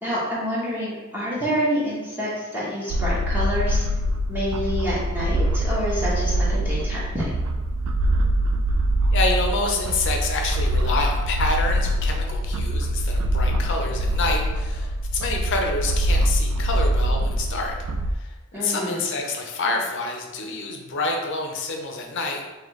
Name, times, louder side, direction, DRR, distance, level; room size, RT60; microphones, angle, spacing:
voice 1, 0.0-3.8 4.3-7.3 18.5-19.0, equal, 10° right, -8 dB, 0.9 m, -27 dB
sound 1, 2.9-18.1, right 1 dB, 90° right, 0.3 m, -23 dB
voice 2, 9.1-17.8 18.1-22.4, left 3 dB, 60° left, 2 dB, 0.6 m, -27 dB
4.0 x 2.7 x 3.1 m, 1.1 s
head